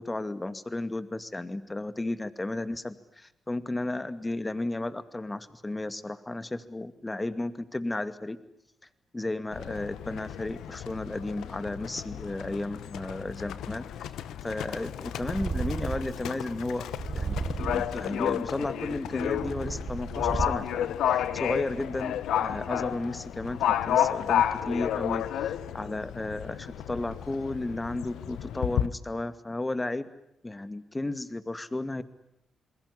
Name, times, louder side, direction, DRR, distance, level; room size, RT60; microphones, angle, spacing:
voice 1, 0.0-8.4 9.1-14.1 14.4-16.9 17.1-17.4 17.6-30.1 30.4-32.0, left 2 dB, 20° left, 13 dB, 2.2 m, -33 dB
Livestock farm animals working animals, 9.5-28.9, left 10 dB, 80° left, 1.0 m, -32 dB
Purr, 15.2-16.3 16.9-18.0 18.7-20.8, right 4 dB, 50° right, 3.8 m, -33 dB
28.5 x 21.5 x 9.9 m, 0.79 s
supercardioid pair, 45°, 0 cm